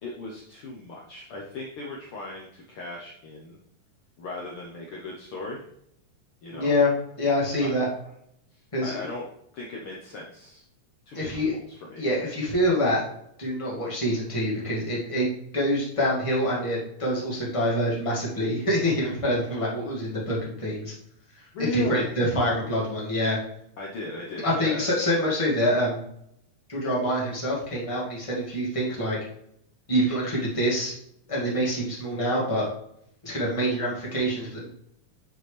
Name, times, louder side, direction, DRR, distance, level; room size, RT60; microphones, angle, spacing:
voice 1, 0.0-3.6 4.2-5.6 6.4-6.7 7.6-7.7 8.5-9.3 9.5-10.6 11.1-12.1 21.5-22.3 23.8-24.9, left 2 dB, 75° left, -3 dB, 1.2 m, -37 dB
voice 2, 6.5-6.9 7.2-7.9 8.7-9.0 11.1-11.5 12.0-13.0 13.4-15.3 15.5-20.9 21.6-23.4 24.4-26.0 26.7-29.2 29.9-30.9 31.3-32.7 33.2-34.7, equal, 15° left, -5 dB, 1.5 m, -26 dB
8.9 x 4.5 x 3.3 m, 0.73 s
omnidirectional pair, 3.8 m